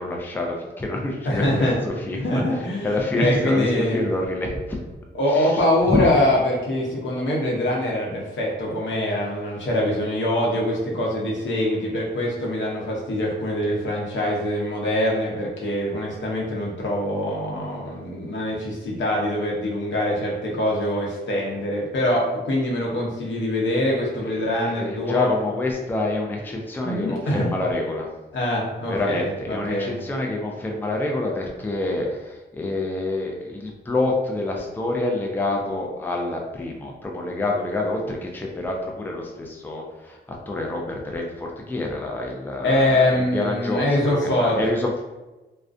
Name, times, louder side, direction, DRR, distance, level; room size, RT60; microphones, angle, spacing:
voice 1, 0.0-2.2 2.5-4.8 5.3-5.6 5.9-6.1 24.2-28.1 28.9-40.2 40.5-45.0, left 2 dB, 10° left, 0 dB, 0.4 m, -27 dB
voice 2, 1.2-1.8 2.2-4.0 5.1-25.3 26.8-27.5 28.3-29.9 42.6-44.6, left 1 dB, 75° left, -3 dB, 0.8 m, -24 dB
2.4 x 2.1 x 2.5 m, 1.1 s
cardioid pair, 75°, 19 cm